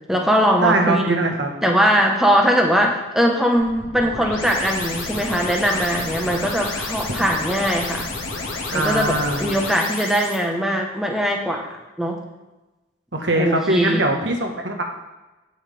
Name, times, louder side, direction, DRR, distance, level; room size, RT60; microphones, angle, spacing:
voice 1, 0.1-1.3 1.6-8.1 8.7-11.7 12.0-12.2 13.3-14.0, equal, ahead, 0 dB, 1.3 m, -20 dB
voice 2, 0.6-1.5 8.7-9.5 13.1-14.8, right 2 dB, 65° right, 2 dB, 1.6 m, -21 dB
sound 1, 3.6-10.4, left 3 dB, 85° left, 2.2 m, -30 dB
16.5 x 6.2 x 3.6 m, 1.1 s
head